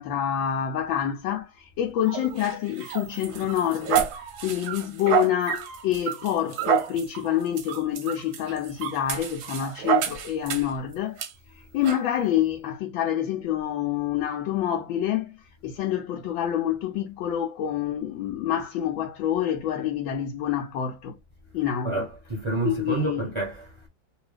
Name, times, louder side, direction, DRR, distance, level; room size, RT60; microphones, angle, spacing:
voice 1, 0.0-11.2 11.5-21.2 21.5-22.1 22.6-23.3, left 10 dB, 80° left, 1.4 m, -27 dB
sound 1, 2.1-10.8 11.2-11.3 11.8-12.0, right 10 dB, 65° right, 1.0 m, -29 dB
voice 2, 21.8-23.9, right 3 dB, 30° right, 0.5 m, -29 dB
2.9 x 2.9 x 3.2 m
omnidirectional pair, 2.1 m